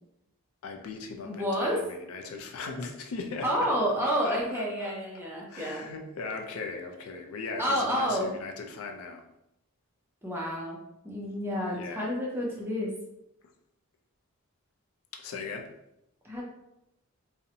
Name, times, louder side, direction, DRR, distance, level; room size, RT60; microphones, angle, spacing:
voice 1, 0.6-3.7 4.0-4.9 5.5-9.2 11.7-12.1 15.1-15.7, left 4 dB, 70° left, 3 dB, 0.4 m, -38 dB
voice 2, 1.2-1.8 3.4-5.9 7.6-8.3 10.2-10.8 11.0-12.9 16.2-16.4, equal, 10° right, -3 dB, 0.4 m, -29 dB
2.6 x 2.0 x 2.7 m, 0.84 s
head